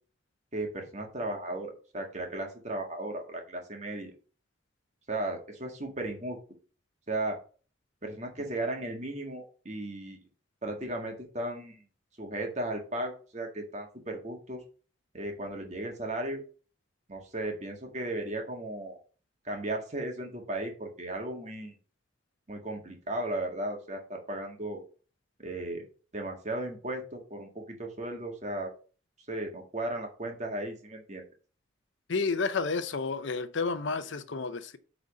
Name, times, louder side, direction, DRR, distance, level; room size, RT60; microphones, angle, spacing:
voice 1, 0.5-4.1 5.1-6.4 7.1-7.4 8.0-10.2 10.6-11.8 12.2-14.6 15.1-16.4 17.1-19.0 19.4-21.8 22.5-24.8 25.4-25.8 26.1-28.7 29.3-31.2, right 1 dB, 35° right, 1.7 m, -35 dB
voice 2, 32.1-34.8, left 4 dB, 70° left, 0.7 m, -31 dB
8.6 x 4.1 x 5.2 m
head